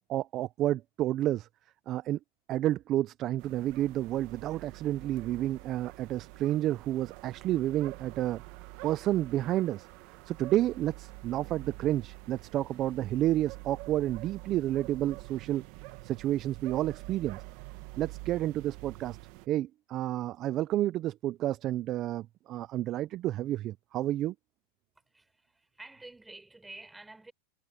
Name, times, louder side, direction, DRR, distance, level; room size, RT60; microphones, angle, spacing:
voice 1, 0.1-1.5 1.9-2.2 2.5-8.4 8.8-9.9 10.3-15.6 16.0-17.4 18.0-19.2 19.5-24.3, right 13 dB, 30° right, 0.3 m, -30 dB
sound 1, 3.4-19.5, right 20 dB, 45° right, 1.2 m, -46 dB
voice 2, 25.1-27.3, right 2 dB, 5° right, 5.2 m, -49 dB
supercardioid pair, 165°, 0 cm